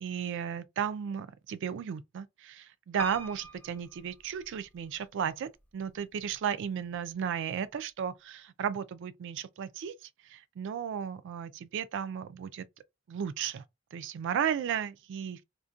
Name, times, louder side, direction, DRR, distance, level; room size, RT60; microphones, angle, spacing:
voice 1, 0.0-9.9 10.3-12.6 13.1-13.6 13.9-15.4, right 8 dB, 60° right, 0.3 m, -34 dB
Piano, 3.0-5.0 5.6-6.3 6.6-6.7 6.9-7.0, right 1 dB, 10° left, 0.5 m, -46 dB
2.6 x 2.1 x 2.3 m
head